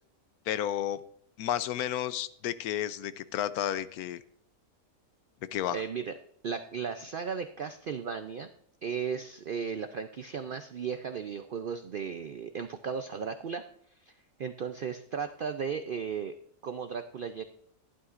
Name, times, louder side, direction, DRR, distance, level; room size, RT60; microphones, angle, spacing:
voice 1, 0.5-1.0 1.4-4.2 5.5-5.8, left 11 dB, 85° left, 14 dB, 1.1 m, -32 dB
voice 2, 5.7-6.1 6.4-8.5 8.8-13.6 14.0-14.1 14.4-16.3 16.6-17.4, right 6 dB, 70° right, 8 dB, 0.5 m, -35 dB
12.5 x 11.0 x 2.5 m, 0.67 s
omnidirectional pair, 1.6 m